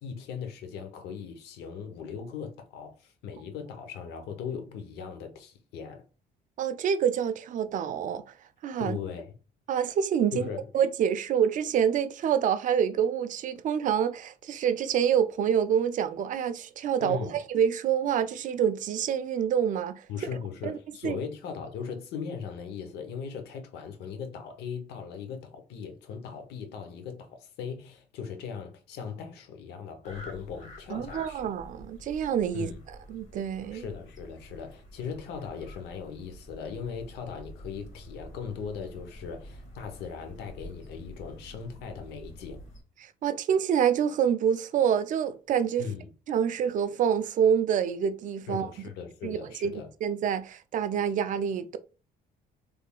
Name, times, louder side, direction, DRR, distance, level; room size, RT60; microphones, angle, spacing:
voice 1, 0.0-6.0 8.8-9.3 10.3-10.7 17.0-17.4 20.1-31.5 32.5-32.8 33.7-42.6 45.8-46.1 48.5-49.9, left 6 dB, 80° left, 0.8 m, -39 dB
voice 2, 6.6-8.2 8.6-9.0 9.7-10.5 10.7-20.1 20.6-20.8 21.0-21.2 30.9-32.7 33.1-33.8 43.0-45.9 46.3-48.7 49.2-49.7 50.0-51.8, right 8 dB, 50° right, 0.4 m, -27 dB
sound 1, 30.0-42.8, equal, 45° left, 1.6 m, -48 dB
3.5 x 3.3 x 2.3 m
cardioid pair, 110°, 17 cm